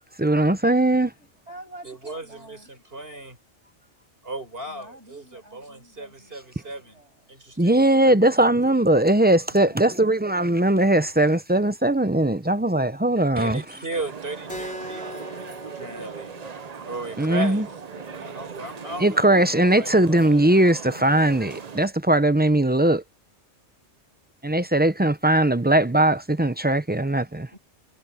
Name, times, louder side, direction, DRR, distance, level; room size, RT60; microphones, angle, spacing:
voice 1, 0.2-1.1 7.6-13.6 17.2-17.6 19.0-23.0 24.4-27.5, right 1 dB, 10° right, 0.6 m, -20 dB
voice 2, 1.1-2.7 4.7-7.3 7.6-8.4 9.5-10.2 18.0-19.0 27.5-27.6, right 1 dB, 70° right, 7.5 m, -49 dB
voice 3, 1.8-3.4 4.2-7.0 7.3-8.3 13.3-16.3 16.8-19.9, right 2 dB, 55° right, 5.0 m, -36 dB
sound 1, 13.9-21.9, right 6 dB, 40° right, 0.8 m, -39 dB
Keyboard (musical), 14.5-19.6, equal, 5° left, 4.9 m, -42 dB
omnidirectional pair, 1.2 m